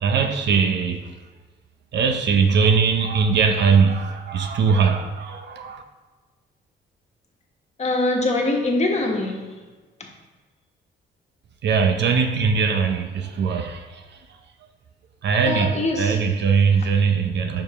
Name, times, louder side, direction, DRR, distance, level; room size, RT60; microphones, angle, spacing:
voice 1, 0.0-1.1 1.9-5.8 11.6-14.2 15.2-17.6, right 5 dB, 60° right, 6 dB, 0.6 m, -20 dB
voice 2, 7.8-9.5 15.4-16.2, left 2 dB, 35° left, 1 dB, 1.4 m, -23 dB
5.4 x 4.9 x 4.9 m, 1.3 s
cardioid pair, 90°, 20 cm